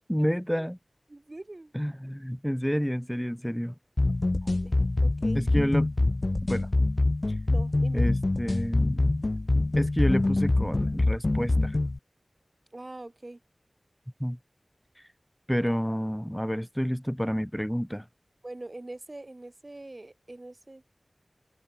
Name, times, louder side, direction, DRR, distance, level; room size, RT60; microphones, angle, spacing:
voice 1, 0.1-0.8 1.7-3.7 5.3-5.9 6.5-6.7 7.9-9.2 9.7-11.8 14.2-14.4 15.5-18.0, equal, 5° left, 1.8 m, -29 dB
voice 2, 1.1-1.7 4.4-4.7 5.0-5.4 7.5-8.0 12.7-13.4 18.4-20.9, right 2 dB, 45° right, 2.2 m, -43 dB
sound 1, 4.0-12.0, left 2 dB, 50° left, 1.2 m, -25 dB
open air
wide cardioid pair, 55°, 0 cm